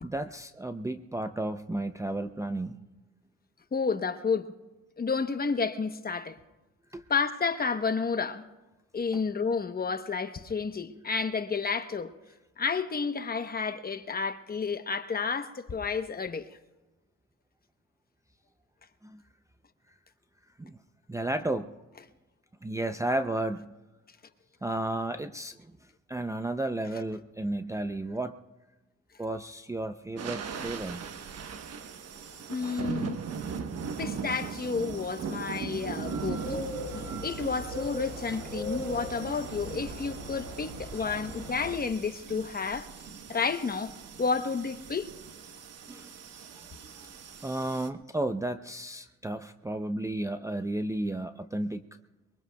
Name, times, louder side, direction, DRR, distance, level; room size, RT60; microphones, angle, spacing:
voice 1, 0.0-2.8 6.9-7.0 19.0-19.2 20.6-20.8 21.1-21.7 22.6-23.7 24.6-25.6 26.1-28.4 29.2-31.0 41.0-41.2 45.9-46.1 47.0-47.1 47.4-51.8, right 1 dB, 10° right, 0.5 m, -33 dB
voice 2, 3.7-4.5 5.0-6.4 7.1-8.4 8.9-12.1 12.6-16.5 32.5-33.2 34.0-42.9 43.3-43.9 44.2-45.1, left 5 dB, 30° left, 1.0 m, -31 dB
sound 1, 30.2-47.9, right 6 dB, 55° right, 1.1 m, -40 dB
sound 2, 36.0-41.7, right 1 dB, 80° right, 3.3 m, -39 dB
23.0 x 22.5 x 2.3 m
cardioid pair, 90°, 30 cm